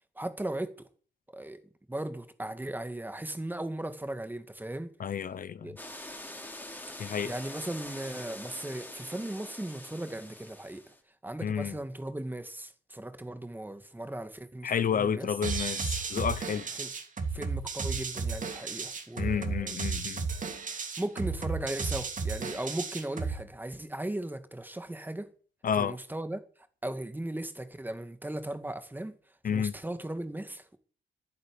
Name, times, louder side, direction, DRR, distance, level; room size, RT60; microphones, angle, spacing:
voice 1, 0.2-0.9 1.3-1.6 1.9-4.9 5.6-5.8 6.9-10.8 11.2-15.3 16.8-16.9 17.3-19.8 21.0-25.3 25.8-26.4 26.8-29.2 29.5-30.8, right 1 dB, 10° right, 2.0 m, -37 dB
voice 2, 5.0-5.8 7.0-7.3 11.4-11.7 14.6-16.7 19.2-20.3 25.6-26.0 29.4-29.7, left 7 dB, 45° left, 0.9 m, -30 dB
sound 1, 5.8-11.0, left 1 dB, 10° left, 3.3 m, -44 dB
sound 2, 15.4-23.4, right 4 dB, 40° right, 2.8 m, -34 dB
10.5 x 10.0 x 8.4 m
cardioid pair, 90°, 20 cm